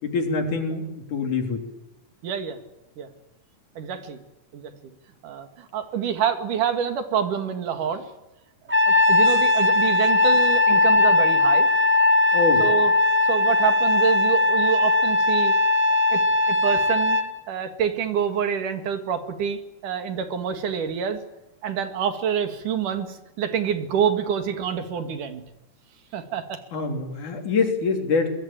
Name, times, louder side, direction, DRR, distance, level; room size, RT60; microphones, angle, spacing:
voice 1, 0.0-1.6 12.3-12.6 26.7-28.3, left 4 dB, 70° left, 3 dB, 5.0 m, -25 dB
voice 2, 2.2-2.6 3.0-3.1 3.8-4.2 4.5-4.7 5.2-8.1 8.9-11.7 12.6-12.9 13.3-15.6 16.1-16.2 16.5-17.2 17.5-21.2 21.6-25.4 26.1-26.6, right 8 dB, 80° right, 8 dB, 3.6 m, -27 dB
Trumpet, 8.7-17.3, left 2 dB, 5° right, 1.2 m, -19 dB
24.0 x 21.0 x 9.0 m, 0.96 s
omnidirectional pair, 3.6 m